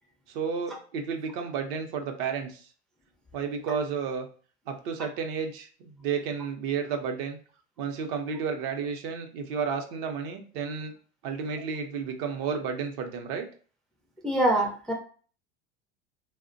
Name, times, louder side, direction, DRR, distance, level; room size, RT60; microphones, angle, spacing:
voice 1, 0.3-2.7 3.3-4.3 4.7-7.4 7.8-10.9 11.2-13.5, right 6 dB, 60° right, 5 dB, 0.6 m, -32 dB
voice 2, 14.2-14.9, right 1 dB, ahead, 0 dB, 0.4 m, -24 dB
2.4 x 2.1 x 2.5 m, 0.41 s
hypercardioid pair, 95°, 34 cm